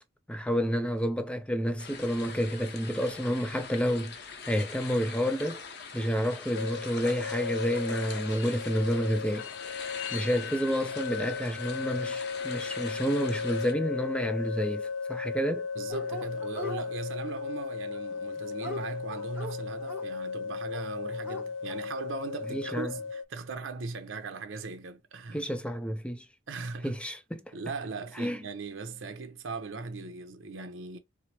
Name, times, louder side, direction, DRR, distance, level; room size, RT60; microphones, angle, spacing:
voice 1, 0.3-5.6 5.9-9.5 10.1-15.7 22.5-22.9 25.3-26.3 26.8-27.4 28.2-28.4, equal, 5° left, 0.4 m, -30 dB
sound 1, 1.8-13.7, left 5 dB, 55° left, 0.7 m, -43 dB
sound 2, 6.5-23.2, left 5 dB, 75° left, 0.3 m, -36 dB
voice 2, 15.7-25.5 26.5-26.9 27.5-31.0, right 3 dB, 80° right, 0.7 m, -39 dB
Dog, 15.9-16.8 17.9-20.0 20.7-20.8 21.1-21.8, left 1 dB, 10° right, 1.1 m, -40 dB
4.6 x 2.0 x 2.8 m
head